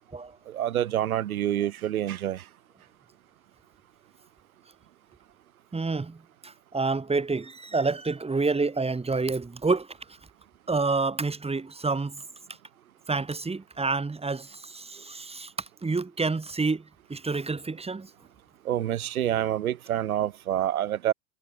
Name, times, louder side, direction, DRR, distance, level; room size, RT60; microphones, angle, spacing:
voice 1, 0.5-2.4 18.6-21.1, right 11 dB, 85° right, 3.4 m, -27 dB
voice 2, 5.7-9.9 10.7-12.2 13.1-16.8 17.1-18.1, right 3 dB, 15° right, 4.4 m, -28 dB
hypercardioid pair, 90°, 42 cm